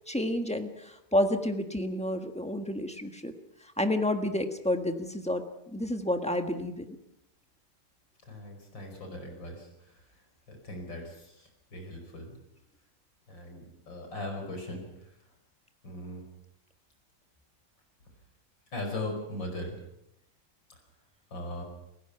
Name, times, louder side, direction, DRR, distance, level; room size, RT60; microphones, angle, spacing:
voice 1, 0.1-3.3 3.8-7.0, left 1 dB, 5° left, 6 dB, 1.1 m, -30 dB
voice 2, 8.3-10.0 10.5-12.4 13.3-15.1 15.8-16.2 18.7-19.8 21.3-21.6, left 1 dB, 55° left, 3 dB, 5.7 m, -39 dB
29.0 x 16.0 x 5.9 m, 0.82 s
omnidirectional pair, 2.4 m